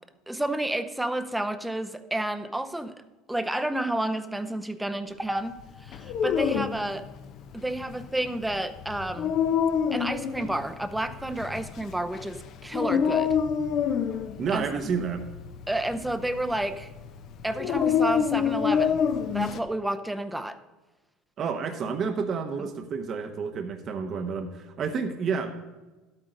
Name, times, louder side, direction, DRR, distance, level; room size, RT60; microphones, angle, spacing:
voice 1, 0.3-2.9 3.3-7.1 7.5-9.4 9.9-13.3 14.5-14.7 15.7-16.9 17.4-20.6, right 1 dB, 5° right, 9 dB, 0.7 m, -30 dB
Dog, 5.9-19.6, left 7 dB, 50° left, 0.7 m, -27 dB
voice 2, 14.4-15.3 21.4-25.5, right 5 dB, 40° right, 5 dB, 0.9 m, -30 dB
12.0 x 8.9 x 3.9 m, 1.2 s
supercardioid pair, 120°, 0 cm